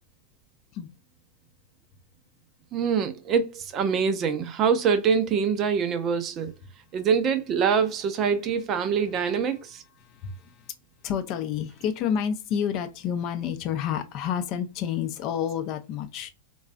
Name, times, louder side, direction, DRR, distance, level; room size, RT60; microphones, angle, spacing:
voice 1, 2.7-6.5 6.9-9.8, right 6 dB, 30° right, 0.5 m, -24 dB
voice 2, 10.0-10.7 11.0-16.3, left 8 dB, 40° left, 0.5 m, -29 dB
3.9 x 2.3 x 2.3 m
figure-of-eight pair, 90°, 0 cm